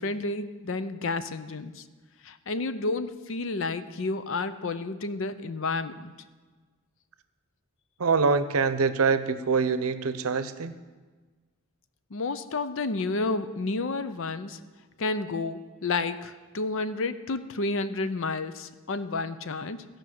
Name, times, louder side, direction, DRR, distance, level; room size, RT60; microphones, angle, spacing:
voice 1, 0.0-1.8 2.2-6.1 12.1-14.6 15.0-19.8, left 3 dB, 65° left, 12 dB, 0.6 m, -31 dB
voice 2, 8.0-10.7, right 5 dB, 85° right, 12 dB, 0.7 m, -24 dB
15.0 x 5.2 x 7.5 m, 1.4 s
head